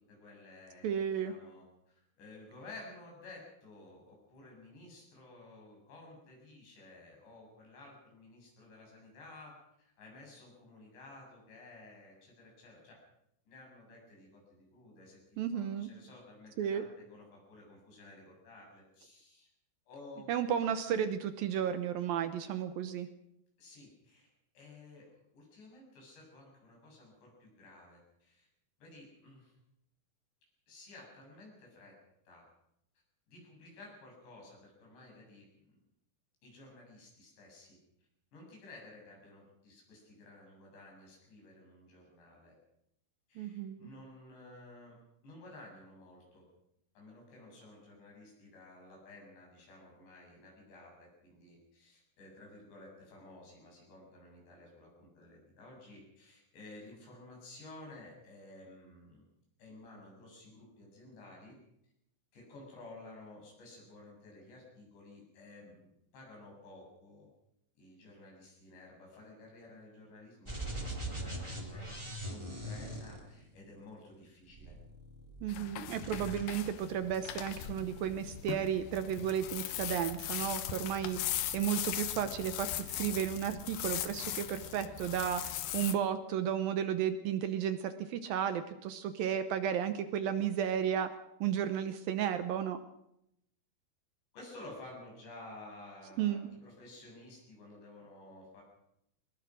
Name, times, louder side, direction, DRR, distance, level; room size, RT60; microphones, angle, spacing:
voice 1, 0.1-13.0 13.5-19.5 19.9-20.3 23.6-24.3 24.5-28.5 28.8-29.5 30.7-32.0 32.3-32.5 33.3-35.8 36.4-37.8 38.3-42.6 43.3-46.4 46.9-59.2 59.6-61.6 62.3-67.3 67.8-74.8 77.4-77.6 94.3-98.6, left 2 dB, 85° left, -1 dB, 10.0 m, -54 dB
voice 2, 0.8-1.3 15.4-15.9 16.6-16.8 20.3-23.1 43.4-43.9 75.4-91.1 91.4-92.8 96.2-96.5, right 9 dB, 70° right, 10 dB, 2.4 m, -33 dB
sound 1, 70.4-73.8 74.5-75.6 75.8-76.4, right 1 dB, 5° right, 3.2 m, -41 dB
sound 2, 75.5-85.9, left 11 dB, 70° left, 2.4 m, -39 dB
22.0 x 20.5 x 6.3 m, 0.78 s
omnidirectional pair, 4.9 m